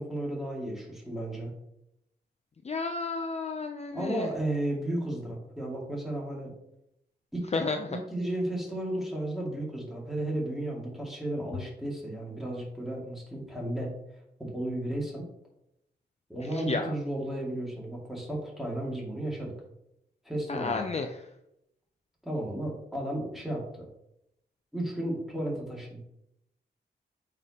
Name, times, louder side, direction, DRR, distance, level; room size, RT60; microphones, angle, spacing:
voice 1, 0.0-1.5 3.9-6.5 7.3-13.9 14.4-15.2 16.3-19.5 20.2-20.8 22.2-23.9 24.7-26.0, right 1 dB, ahead, -3 dB, 2.2 m, -33 dB
voice 2, 2.6-4.3 7.5-7.9 16.5-16.9 20.5-21.2, left 4 dB, 35° left, 5 dB, 0.5 m, -32 dB
8.4 x 5.0 x 2.9 m, 0.82 s
wide cardioid pair, 105°, 18 cm